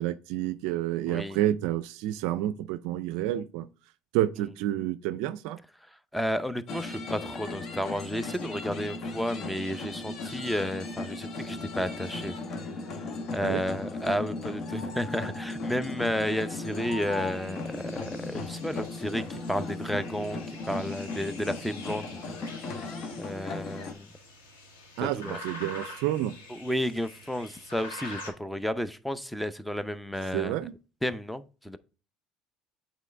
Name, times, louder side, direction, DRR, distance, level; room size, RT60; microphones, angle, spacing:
voice 1, 0.0-3.7 4.1-5.6 13.4-13.6 25.0-26.4 30.3-30.7, right 13 dB, 75° right, 0.3 m, -29 dB
voice 2, 1.1-1.4 6.1-12.3 13.3-22.1 23.2-24.1 25.0-25.4 26.5-30.6 31.0-31.8, equal, 5° left, 0.6 m, -32 dB
sound 1, 6.7-23.9, left 3 dB, 55° left, 1.2 m, -36 dB
sound 2, 16.7-28.3, left 2 dB, 90° left, 2.2 m, -46 dB
8.2 x 4.0 x 3.3 m
hypercardioid pair, 70°, 0 cm